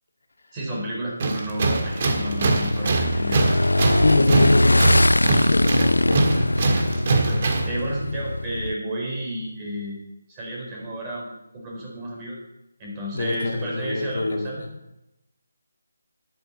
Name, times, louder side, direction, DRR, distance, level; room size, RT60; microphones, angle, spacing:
voice 1, 0.5-3.7 7.1-10.0 10.3-12.4 12.8-14.6, right 1 dB, 20° right, -3 dB, 4.4 m, -32 dB
Tools, 1.2-7.8, right 3 dB, 40° right, 1.7 m, -23 dB
Motorcycle / Engine, 1.7-8.7, left 1 dB, 90° left, 0.4 m, -22 dB
voice 2, 3.9-5.2 5.5-6.4 13.1-14.7, left 2 dB, 65° left, 3 dB, 2.0 m, -25 dB
13.0 x 11.0 x 4.2 m, 0.88 s
figure-of-eight pair, 160°, 0 cm